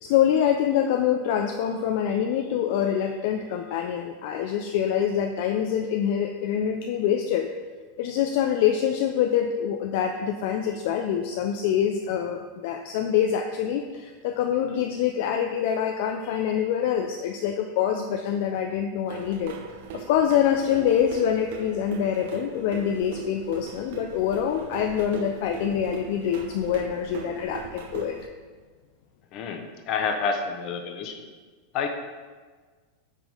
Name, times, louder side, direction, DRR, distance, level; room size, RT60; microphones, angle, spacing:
voice 1, 0.0-7.5 8.0-19.6 19.9-28.2, left 9 dB, 60° left, 4 dB, 0.4 m, -25 dB
sound 1, 19.1-28.3, right 6 dB, 70° right, 0.5 m, -40 dB
voice 2, 29.3-31.3 31.7-31.9, left 5 dB, 45° left, 4 dB, 0.8 m, -29 dB
4.9 x 3.7 x 5.3 m, 1.5 s
supercardioid pair, 135°, 0 cm